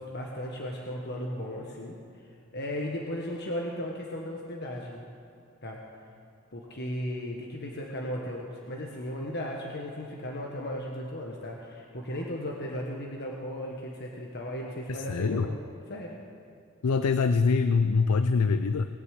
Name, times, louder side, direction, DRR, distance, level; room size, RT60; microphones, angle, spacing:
voice 1, 0.0-2.0 2.5-5.0 5.6-5.8 6.5-15.6 15.9-16.2, left 1 dB, 50° left, -1 dB, 1.5 m, -36 dB
voice 2, 14.9-15.5 16.8-18.9, left 4 dB, 90° left, 10 dB, 0.5 m, -24 dB
20.0 x 8.1 x 8.2 m, 2.5 s
head